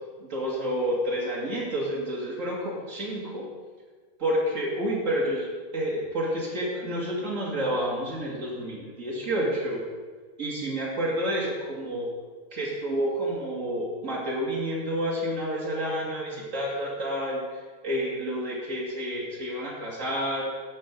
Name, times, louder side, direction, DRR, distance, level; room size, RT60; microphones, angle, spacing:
voice 1, 0.2-3.5 4.2-5.5 5.7-9.8 10.4-12.1 12.5-17.4 17.8-20.4, equal, 70° right, -5 dB, 0.7 m, -29 dB
13.0 x 6.1 x 5.2 m, 1.5 s
omnidirectional pair, 4.9 m